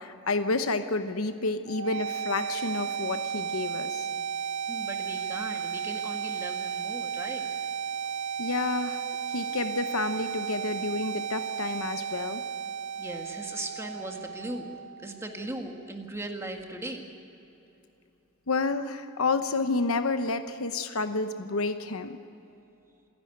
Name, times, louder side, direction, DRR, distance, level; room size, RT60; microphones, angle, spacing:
voice 1, 0.0-4.1 8.4-9.0 9.3-12.4 18.5-22.2, left 3 dB, 85° left, 9 dB, 0.9 m, -30 dB
sound 1, 1.7-15.6, right 7 dB, 65° right, 0.4 m, -34 dB
voice 2, 4.1-7.5 13.0-14.7 15.0-17.0, right 1 dB, 15° right, 3 dB, 1.9 m, -38 dB
27.5 x 10.5 x 9.3 m, 2.9 s
head